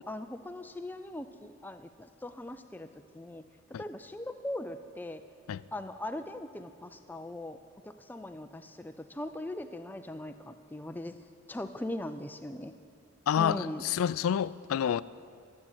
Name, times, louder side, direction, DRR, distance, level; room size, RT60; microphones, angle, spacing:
voice 1, 0.1-3.4 3.8-5.2 5.7-7.6 7.8-11.2 11.5-12.7 13.4-13.8, left 1 dB, 10° left, 0.4 m, -40 dB
voice 2, 13.3-15.0, left 8 dB, 80° left, 0.3 m, -28 dB
12.0 x 7.5 x 9.5 m
head